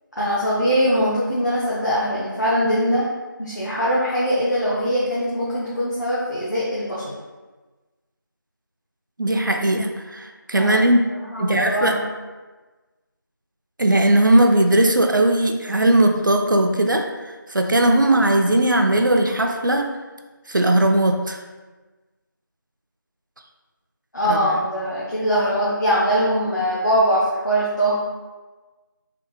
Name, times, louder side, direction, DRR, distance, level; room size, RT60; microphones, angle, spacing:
voice 1, 0.2-3.1 3.4-7.1 10.6-10.7 11.3-12.0 24.1-28.0, equal, 60° left, -8 dB, 0.7 m, -22 dB
voice 2, 9.2-11.1 11.4-12.0 13.8-17.1 17.5-20.0 20.5-21.4 24.2-24.6, right 1 dB, 65° right, 4 dB, 0.4 m, -18 dB
3.3 x 2.2 x 3.0 m, 1.3 s
figure-of-eight pair, 180°, 11 cm